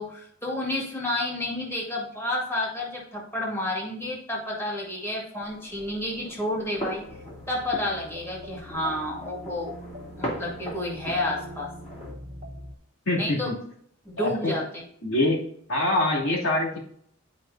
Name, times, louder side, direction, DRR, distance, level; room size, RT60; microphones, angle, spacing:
voice 1, 0.0-7.1 7.5-9.8 10.2-11.7 13.2-13.5 14.0-14.8, left 1 dB, 10° left, -3 dB, 2.1 m, -30 dB
sound 1, 5.4-12.1, equal, 30° left, 2.8 m, -40 dB
sound 2, 7.1-12.7, left 1 dB, 35° right, 1.2 m, -42 dB
voice 2, 13.1-13.6 14.2-14.5 15.0-15.4 15.7-16.8, left 2 dB, 80° left, -4 dB, 2.9 m, -24 dB
11.5 x 5.1 x 2.8 m, 0.65 s
head